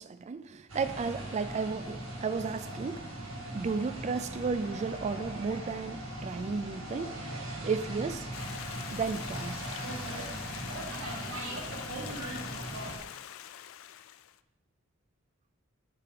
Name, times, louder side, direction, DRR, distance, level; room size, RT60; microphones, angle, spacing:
voice 1, 0.0-3.1 3.5-7.2 7.6-8.3 8.9-9.6, right 5 dB, 35° right, 12 dB, 0.3 m, -33 dB
sound 1, 0.7-13.0, right 1 dB, 75° right, 1.5 m, -39 dB
Stream, 8.3-14.4, left 11 dB, 70° left, 0.3 m, -44 dB
5.9 x 4.9 x 4.9 m, 0.95 s
head